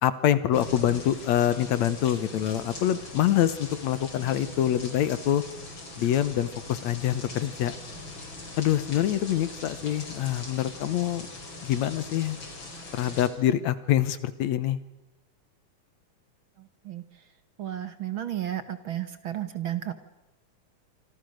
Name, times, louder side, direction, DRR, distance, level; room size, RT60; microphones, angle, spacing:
voice 1, 0.0-5.4 6.0-7.7 8.6-11.3 11.6-12.4 12.9-14.8, left 11 dB, 70° left, 15 dB, 2.2 m, -25 dB
sound 1, 0.5-13.3, left 2 dB, 40° left, 4.9 m, -41 dB
voice 2, 17.6-19.9, right 12 dB, 55° right, 12 dB, 1.6 m, -32 dB
26.0 x 25.5 x 6.5 m, 0.95 s
omnidirectional pair, 3.4 m